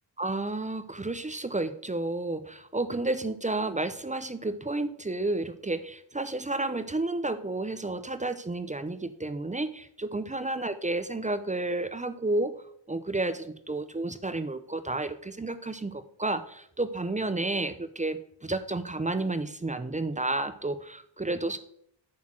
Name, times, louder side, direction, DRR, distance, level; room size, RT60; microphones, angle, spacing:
voice 1, 0.2-12.5 12.9-21.6, right 2 dB, 15° right, 11 dB, 0.6 m, -31 dB
7.3 x 4.4 x 5.9 m, 0.66 s
cardioid pair, 65°, 47 cm